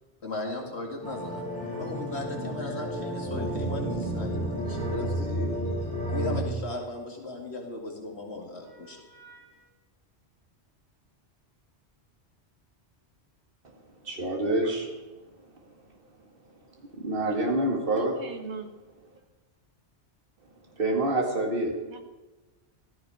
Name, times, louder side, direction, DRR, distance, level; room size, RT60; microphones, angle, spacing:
voice 1, 0.2-1.4 1.8-5.6 6.1-9.7, left 2 dB, 65° left, 1 dB, 2.5 m, -37 dB
sound 1, 1.0-6.4, right 1 dB, 5° left, 4.9 m, -31 dB
voice 2, 14.0-14.9 16.9-18.2 20.8-21.8, right 1 dB, 50° right, 1 dB, 2.3 m, -26 dB
voice 3, 17.9-18.7 21.8-22.0, right 4 dB, 70° right, 7 dB, 1.6 m, -40 dB
15.0 x 14.0 x 4.9 m, 1.2 s
omnidirectional pair, 1.2 m